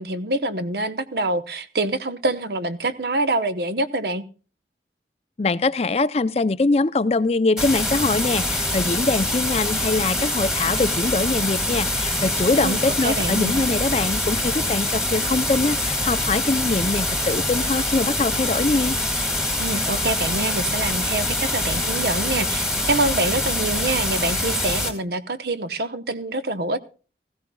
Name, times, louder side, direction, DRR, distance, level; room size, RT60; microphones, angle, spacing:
voice 1, 0.0-4.2 12.6-13.5 19.6-26.8, right 2 dB, 60° right, 12 dB, 0.9 m, -25 dB
voice 2, 5.4-19.0, left 3 dB, 35° left, 15 dB, 0.5 m, -23 dB
sound 1, 7.6-24.9, left 1 dB, 5° right, 1.9 m, -24 dB
17.5 x 15.0 x 2.3 m, 0.37 s
head